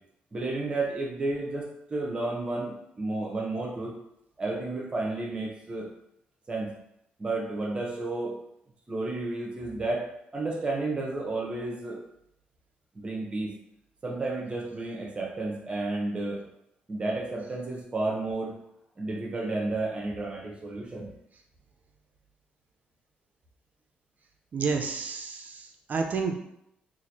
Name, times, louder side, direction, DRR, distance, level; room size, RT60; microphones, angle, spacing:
voice 1, 0.3-3.9 4.4-5.9 6.5-6.7 7.2-8.4 8.9-12.0 12.9-13.5 14.0-16.4 16.9-18.6 19.0-21.1, right 2 dB, 30° right, 1 dB, 0.8 m, -32 dB
voice 2, 24.5-26.4, right 4 dB, 50° right, 3 dB, 0.5 m, -30 dB
3.1 x 2.5 x 4.1 m, 0.78 s
cardioid pair, 100°, 4 cm